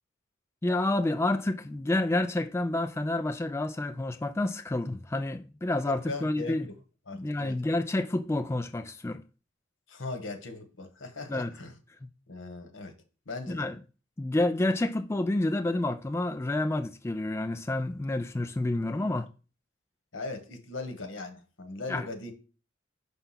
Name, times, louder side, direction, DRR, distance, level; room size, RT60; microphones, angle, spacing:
voice 1, 0.6-6.7 7.1-9.2 11.3-11.5 12.0-12.1 13.5-13.8 14.2-19.3 21.9-22.1, left 2 dB, 15° left, 0.3 m, -29 dB
voice 2, 5.8-6.7 7.1-7.6 9.9-11.7 12.3-12.9 13.3-13.7 18.9-19.1 20.1-22.3, left 3 dB, 85° left, 1.2 m, -39 dB
5.7 x 3.4 x 5.7 m
head